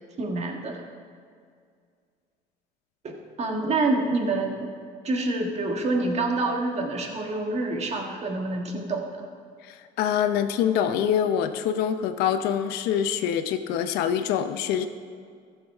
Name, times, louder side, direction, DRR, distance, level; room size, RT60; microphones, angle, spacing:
voice 1, 0.2-0.8 3.0-3.1 3.4-4.7 5.0-9.2, right 2 dB, 40° right, 2 dB, 1.6 m, -27 dB
voice 2, 9.6-14.9, left 9 dB, 80° left, 9 dB, 0.7 m, -25 dB
14.5 x 7.2 x 3.5 m, 2.2 s
supercardioid pair, 100°, 16 cm